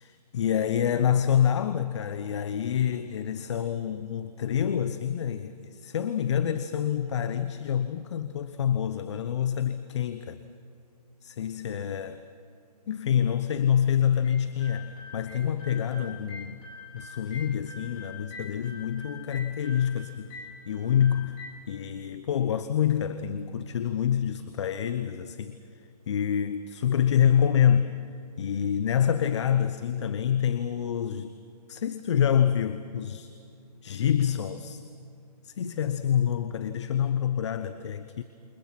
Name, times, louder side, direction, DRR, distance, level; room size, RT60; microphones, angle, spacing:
voice 1, 0.0-10.4 11.2-12.2 12.9-16.7 16.9-20.3 20.7-21.4 21.7-25.6 26.1-27.9 28.4-31.3 31.7-33.3 33.8-34.8 35.4-38.2, left 9 dB, 45° left, 11 dB, 1.0 m, -27 dB
sound 1, 14.2-21.5, left 3 dB, 20° left, 7.2 m, -45 dB
29.0 x 29.0 x 6.0 m, 2.6 s
hypercardioid pair, 145°, 21 cm